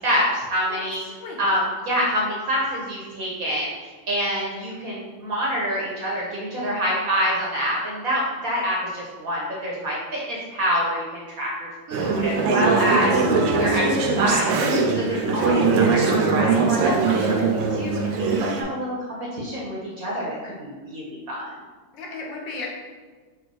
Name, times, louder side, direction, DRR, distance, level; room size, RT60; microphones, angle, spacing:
voice 1, 0.0-1.0 1.4-13.2 13.6-18.9 19.3-21.5, equal, 65° right, -4 dB, 0.9 m, -26 dB
Conversation / Chatter, 11.9-18.6, right 4 dB, 90° right, 1.6 m, -21 dB
voice 2, 21.9-22.7, left 3 dB, 65° left, -2 dB, 1.4 m, -34 dB
4.9 x 2.3 x 4.6 m, 1.4 s
omnidirectional pair, 2.4 m